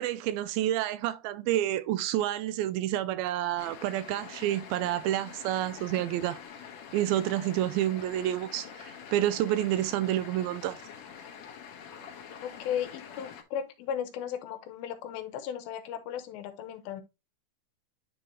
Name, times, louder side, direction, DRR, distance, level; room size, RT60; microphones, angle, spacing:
voice 1, 0.0-6.4 6.9-10.8, right 13 dB, 85° right, 2.4 m, -29 dB
sound 1, 3.6-13.4, left 7 dB, 65° left, 1.8 m, -46 dB
voice 2, 12.4-17.0, left 9 dB, 80° left, 2.7 m, -36 dB
9.8 x 3.9 x 3.0 m
omnidirectional pair, 4.3 m